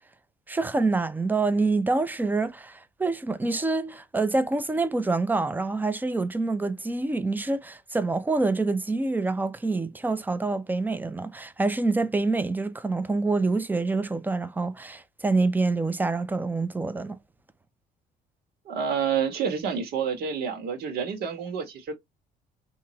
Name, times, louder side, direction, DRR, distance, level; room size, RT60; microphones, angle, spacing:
voice 1, 0.5-17.2, right 3 dB, 10° right, 0.5 m, -26 dB
voice 2, 18.6-21.9, right 7 dB, 70° right, 1.5 m, -28 dB
3.7 x 2.9 x 2.9 m
cardioid pair, 110°, 17 cm